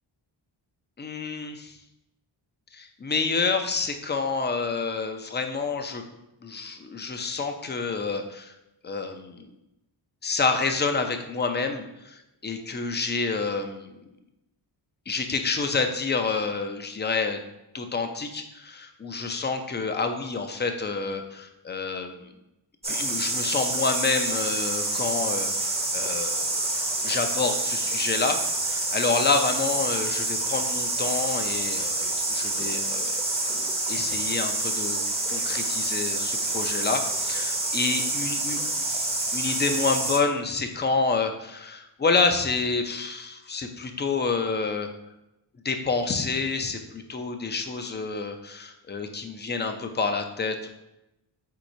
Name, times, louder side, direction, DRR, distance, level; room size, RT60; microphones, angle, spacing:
voice 1, 1.0-1.8 2.7-6.0 6.4-8.5 8.8-9.5 10.2-13.9 15.1-17.4 17.7-22.2 22.9-26.6 27.0-33.1 33.9-35.0 35.3-38.6 38.9-44.9 45.6-50.7, left 4 dB, 20° left, 6 dB, 0.5 m, -28 dB
sound 1, 22.8-40.2, right 2 dB, 15° right, 0.7 m, -27 dB
4.6 x 4.0 x 2.6 m, 0.91 s
cardioid pair, 75°, 48 cm